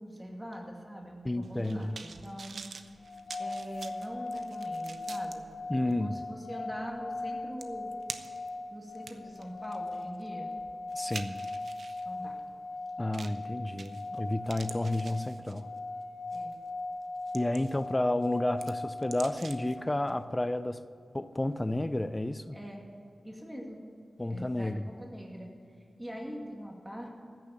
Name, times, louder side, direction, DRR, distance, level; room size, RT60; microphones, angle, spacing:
voice 1, 0.0-2.6 3.4-5.5 6.0-7.9 8.7-10.5 12.0-12.4 16.3-16.5 22.5-22.8 23.2-23.8 24.3-25.5 26.0-27.1, equal, 10° right, 2.3 m, -43 dB
voice 2, 1.2-2.0 5.7-6.1 10.9-11.4 13.0-15.7 17.3-20.8 21.1-22.6 24.2-24.9, left 1 dB, 20° left, 0.5 m, -31 dB
sound 1, 1.4-5.4 5.9-6.0 7.2-7.3 7.6-8.5 8.9-12.0 13.1-13.4 13.8-14.2 14.5-15.8 16.3-16.5 17.0-17.9 18.2-19.8 20.1-20.2, right 4 dB, 80° right, 0.7 m, -46 dB
sound 2, 3.0-20.2, left 2 dB, 85° left, 0.7 m, -39 dB
15.0 x 6.7 x 8.6 m
wide cardioid pair, 85°, 0 cm